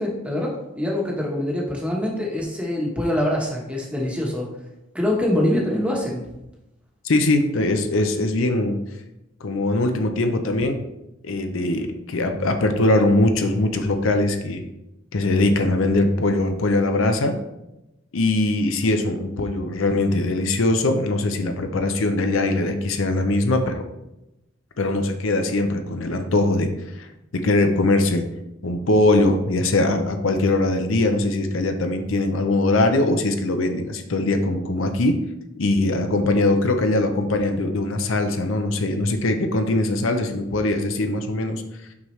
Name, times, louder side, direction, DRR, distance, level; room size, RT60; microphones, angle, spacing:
voice 1, 0.0-4.5 4.9-6.2, left 1 dB, 5° right, -2 dB, 1.1 m, -24 dB
voice 2, 7.0-8.8 9.4-10.8 11.2-14.6 15.1-17.3 18.1-23.8 24.8-26.7 27.0-27.1 27.3-28.3 28.6-35.2 35.6-41.6, left 2 dB, 75° left, 6 dB, 0.6 m, -21 dB
6.0 x 5.5 x 3.2 m, 0.90 s
head